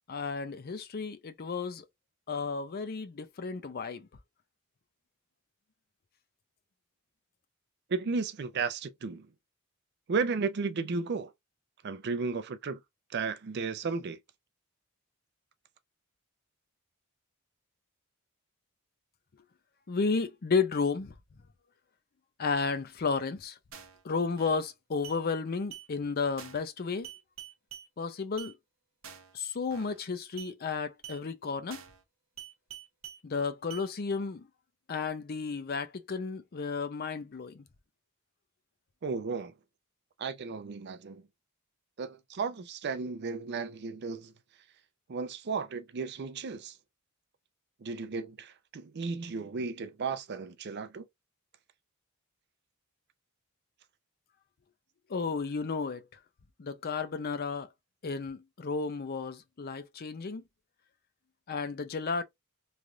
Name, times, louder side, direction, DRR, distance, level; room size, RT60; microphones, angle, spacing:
voice 1, 0.1-1.9 2.3-4.1 19.9-21.1 22.4-23.6 24.0-27.1 28.0-28.5 29.3-31.8 33.2-34.5 34.9-37.6 55.1-56.1 56.6-57.7 58.0-60.4 61.5-62.2, left 4 dB, 45° left, 0.5 m, -33 dB
voice 2, 7.9-9.3 10.1-11.3 11.8-12.8 13.1-14.2 39.0-39.5 40.2-41.2 42.0-44.3 45.1-46.8 47.8-51.0, right 4 dB, 50° right, 0.5 m, -34 dB
sound 1, 23.7-24.0 24.4-24.7 25.0-25.2 25.7-25.9 26.4-26.7 27.0-27.9 28.4-28.5 29.0-29.3 29.7-30.0 30.4-30.5 31.0-31.2 31.7-32.0 32.4-33.2 33.7-33.9, right 10 dB, 65° right, 0.9 m, -46 dB
3.2 x 2.4 x 2.5 m
head